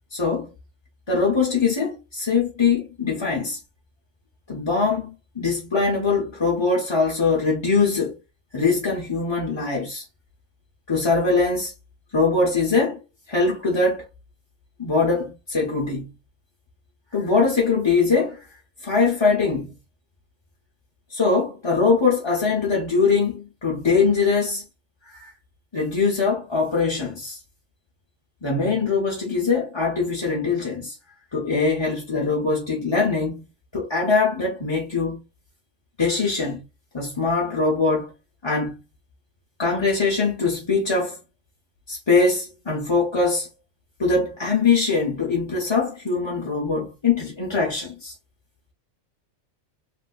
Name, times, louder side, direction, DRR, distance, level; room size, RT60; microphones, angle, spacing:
voice 1, 0.1-0.5 1.1-3.6 4.5-8.2 8.5-10.0 10.9-11.7 12.1-13.0 13.3-14.0 14.8-16.1 17.1-18.4 18.8-19.7 21.1-24.7 25.0-25.3 25.7-27.4 28.4-30.9 31.3-33.4 33.7-35.2 36.0-36.6 36.9-38.1 38.4-38.8 39.6-41.2 41.9-43.5 44.0-48.1, left 4 dB, 30° left, 0.6 m, -22 dB
3.1 x 2.6 x 2.3 m
omnidirectional pair, 1.4 m